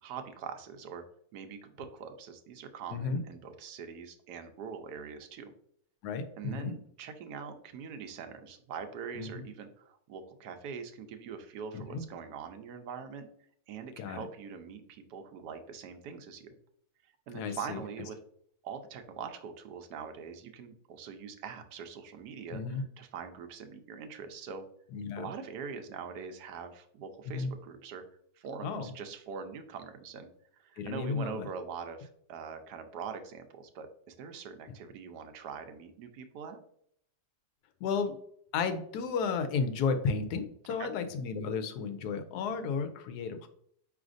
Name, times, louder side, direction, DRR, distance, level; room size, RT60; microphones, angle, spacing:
voice 1, 0.0-1.0 1.3-5.5 6.4-13.3 13.7-16.6 17.3-18.2 18.6-24.6 25.2-28.0 28.3-36.6 40.8-40.9, right 6 dB, 85° right, 7 dB, 1.2 m, -43 dB
voice 2, 2.9-3.2 6.0-6.7 9.2-9.4 11.7-12.0 14.0-14.3 17.3-17.8 22.5-22.8 24.9-25.3 27.3-27.5 28.6-28.9 30.8-31.5 37.8-38.2 38.5-43.5, left 5 dB, 90° left, 8 dB, 1.1 m, -33 dB
5.0 x 3.2 x 2.5 m, 0.66 s
omnidirectional pair, 1.7 m